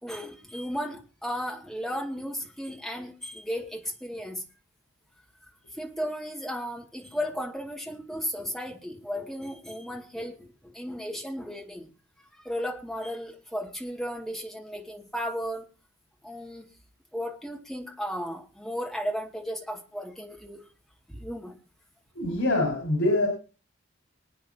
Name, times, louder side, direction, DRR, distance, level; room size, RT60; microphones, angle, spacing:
voice 1, 0.0-4.4 5.8-11.9 12.3-15.6 16.2-16.7 17.1-20.6 21.1-21.5, equal, ahead, 1 dB, 2.3 m, -35 dB
voice 2, 22.1-23.3, left 1 dB, 85° left, 1 dB, 5.1 m, -24 dB
25.0 x 9.2 x 2.8 m, 0.35 s
head